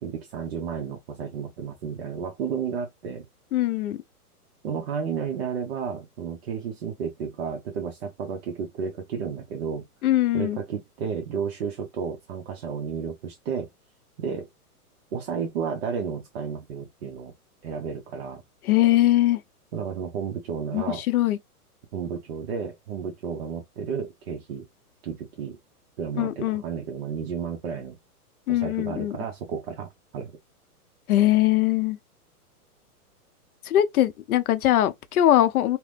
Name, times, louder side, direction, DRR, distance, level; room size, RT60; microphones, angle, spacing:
voice 1, 0.0-3.3 4.6-9.9 10.3-13.7 14.2-14.5 15.1-17.3 17.6-18.4 19.7-21.0 21.9-24.7 25.0-25.6 26.0-28.0 28.5-30.3, right 6 dB, 45° right, 0.7 m, -32 dB
voice 2, 3.5-4.0 10.0-10.6 18.6-19.4 20.7-21.4 26.2-26.6 28.5-29.2 31.1-32.0 33.6-35.8, left 13 dB, 70° left, 0.7 m, -21 dB
2.9 x 2.1 x 3.2 m
hypercardioid pair, 150°, 46 cm